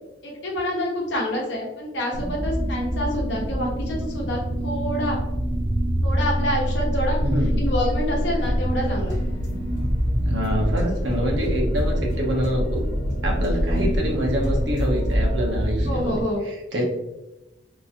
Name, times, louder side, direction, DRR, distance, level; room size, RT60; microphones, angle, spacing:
voice 1, 0.2-5.2 6.0-7.2 7.6-9.2 15.8-16.4, equal, 70° left, -2 dB, 0.9 m, -27 dB
sound 1, 2.1-16.2, equal, 50° right, 0.5 m, -25 dB
voice 2, 7.2-7.6 10.2-12.8 13.2-16.8, equal, 75° right, -1 dB, 0.7 m, -26 dB
filteredpiano remix, 8.2-15.7, equal, 40° left, 1.4 m, -31 dB
2.9 x 2.4 x 2.7 m, 0.98 s
head